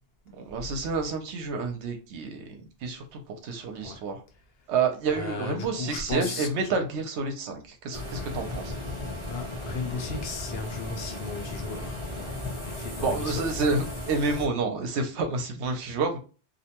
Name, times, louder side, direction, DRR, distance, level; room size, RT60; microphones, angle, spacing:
voice 1, 0.3-4.2 4.7-8.7 13.0-16.2, right 4 dB, 80° right, 0.9 m, -29 dB
voice 2, 5.1-6.5 8.2-8.3 9.2-13.5, left 4 dB, 65° left, 0.8 m, -36 dB
sound 1, 7.9-14.5, left 1 dB, 30° right, 0.8 m, -36 dB
2.6 x 2.2 x 2.8 m
omnidirectional pair, 1.1 m